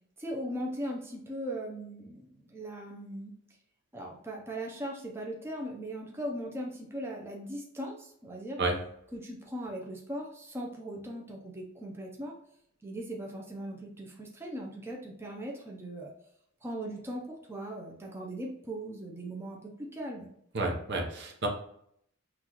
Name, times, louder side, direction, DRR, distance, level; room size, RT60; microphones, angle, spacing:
voice 1, 0.2-3.3 3.9-8.6 9.1-12.3 12.8-16.1 16.6-20.3, right 1 dB, 10° right, -1 dB, 0.6 m, -39 dB
voice 2, 20.5-21.5, right 2 dB, 55° right, 2 dB, 0.8 m, -30 dB
5.9 x 2.4 x 3.0 m, 0.69 s
head